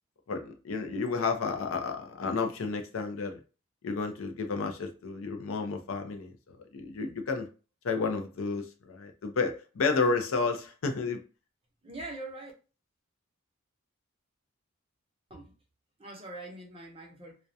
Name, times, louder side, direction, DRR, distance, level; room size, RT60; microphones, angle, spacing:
voice 1, 0.3-3.4 3.8-7.5 7.8-11.2, left 4 dB, 70° left, 0.5 m, -31 dB
voice 2, 11.8-12.5 15.3-15.5 16.0-17.4, right 2 dB, 25° right, 0.6 m, -43 dB
2.3 x 2.1 x 2.6 m
head